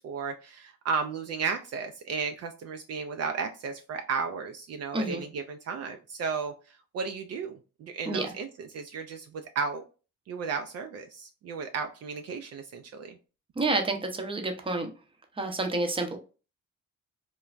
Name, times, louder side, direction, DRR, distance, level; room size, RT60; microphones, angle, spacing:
voice 1, 0.0-9.8 10.3-13.2, right 5 dB, 55° right, 5 dB, 0.4 m, -34 dB
voice 2, 13.6-14.9 15.4-16.2, right 2 dB, 20° right, 5 dB, 0.6 m, -29 dB
3.1 x 2.2 x 2.4 m, 0.33 s
cardioid pair, 90°, 30 cm